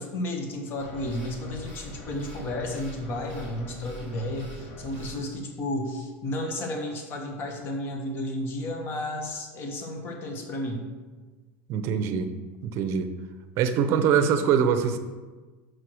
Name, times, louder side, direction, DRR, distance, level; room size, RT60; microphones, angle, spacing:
voice 1, 0.0-10.9, left 1 dB, 35° left, 3 dB, 1.2 m, -32 dB
sound 1, 0.8-5.2, left 1 dB, 70° left, 2.5 m, -43 dB
voice 2, 11.7-12.3 12.6-13.1 13.6-15.0, right 7 dB, 45° right, 8 dB, 0.7 m, -23 dB
6.3 x 4.7 x 6.2 m, 1.3 s
supercardioid pair, 150°, 6 cm